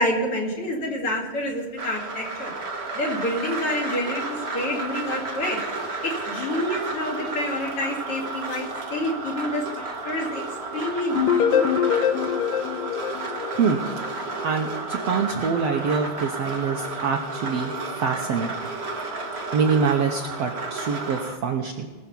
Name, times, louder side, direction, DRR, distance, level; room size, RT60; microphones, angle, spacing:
voice 1, 0.0-2.5 2.9-5.6 6.0-10.4 10.7-11.6, left 1 dB, 45° left, -1 dB, 3.0 m, -28 dB
sound 1, 1.8-21.4, right 3 dB, 40° right, 0.8 m, -32 dB
sound 2, 11.2-14.1, left 9 dB, 80° left, 2.6 m, -23 dB
voice 2, 14.4-17.7 18.0-18.5 19.5-21.9, right 5 dB, 70° right, 2 dB, 1.6 m, -25 dB
21.0 x 7.1 x 5.4 m, 1.4 s
omnidirectional pair, 3.9 m